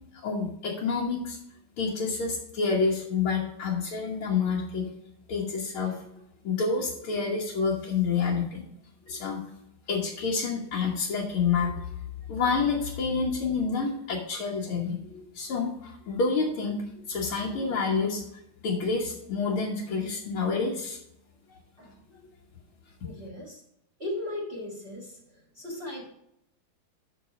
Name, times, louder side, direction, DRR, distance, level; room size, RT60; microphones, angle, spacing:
voice 1, 0.2-1.4 1.8-4.9 5.3-6.0 6.4-8.6 9.1-9.4 9.9-11.9 12.3-16.8 17.1-18.2 18.6-21.0, left 5 dB, 80° left, -4 dB, 2.2 m, -28 dB
voice 2, 23.0-23.6 24.0-25.2 25.5-26.1, left 1 dB, 30° right, -3 dB, 1.9 m, -36 dB
8.2 x 6.1 x 5.0 m, 0.77 s
omnidirectional pair, 2.3 m